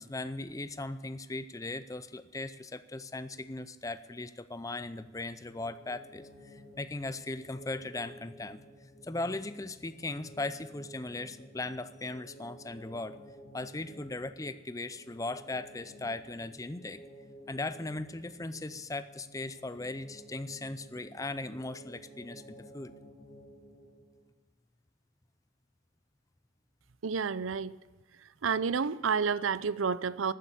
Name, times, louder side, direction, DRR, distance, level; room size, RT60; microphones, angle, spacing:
voice 1, 0.0-8.6 9.0-13.2 13.5-17.0 17.5-22.9, left 2 dB, 15° left, 13 dB, 0.5 m, -38 dB
sound 1, 5.4-24.2, equal, 35° left, 5.7 m, -53 dB
voice 2, 27.0-27.7 28.4-30.3, right 6 dB, 85° right, 18 dB, 0.5 m, -30 dB
13.0 x 9.7 x 8.4 m, 1.3 s
head